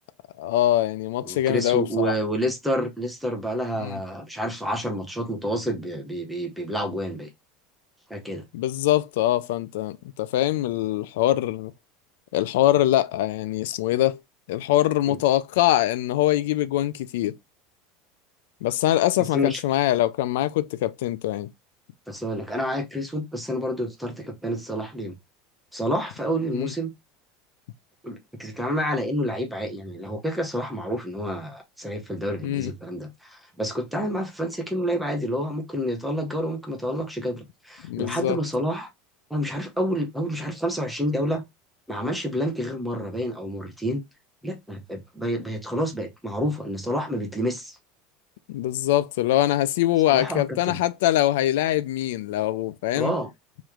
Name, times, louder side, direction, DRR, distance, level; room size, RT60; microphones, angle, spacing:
voice 1, 0.4-2.2 3.8-4.0 8.5-11.7 12.3-14.2 14.5-17.4 18.6-21.5 26.5-26.7 32.4-32.7 37.8-38.4 48.5-53.1, left 14 dB, 90° left, 0.3 m, -23 dB
voice 2, 1.2-7.3 8.1-8.4 15.1-15.2 19.3-19.6 22.1-25.1 25.7-26.9 28.0-38.9 39.3-41.4 41.9-44.0 44.4-47.8 50.1-50.8 52.9-53.3, equal, ahead, 0.7 m, -29 dB
3.0 x 3.0 x 3.5 m
supercardioid pair, 155°, 0 cm